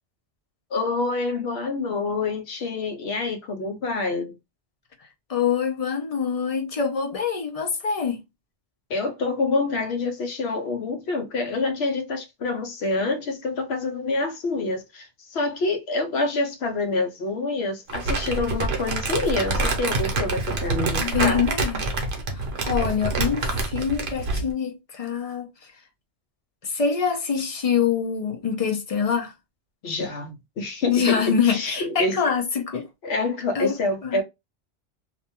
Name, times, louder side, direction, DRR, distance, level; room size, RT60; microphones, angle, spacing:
voice 1, 0.7-4.3 8.9-21.5 29.8-32.2 33.0-34.2, left 3 dB, 70° left, 0.9 m, -27 dB
voice 2, 5.3-8.2 21.0-21.8 22.3-25.5 26.6-29.3 30.9-32.9 33.5-33.8 34.0-34.2, left 6 dB, 45° left, 0.5 m, -25 dB
Crumpling crinkling, 17.9-24.5, right 3 dB, 70° right, 0.9 m, -26 dB
2.5 x 2.2 x 2.8 m
omnidirectional pair, 1.2 m